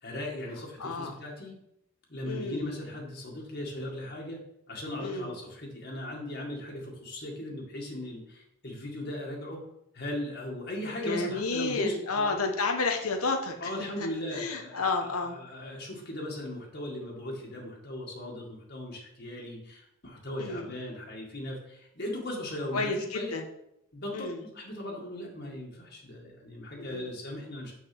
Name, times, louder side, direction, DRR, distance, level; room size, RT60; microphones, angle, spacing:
voice 1, 0.0-1.6 2.1-4.4 4.7-9.7 9.9-12.4 13.6-23.3 23.9-27.7, left 1 dB, 50° left, -2 dB, 1.9 m, -38 dB
voice 2, 0.8-1.1 2.3-2.7 5.0-5.4 11.0-15.4 20.4-20.7 22.7-23.4 24.1-24.4 26.7-27.1, left 3 dB, 90° left, 3 dB, 1.3 m, -31 dB
7.6 x 6.4 x 6.0 m, 0.79 s
head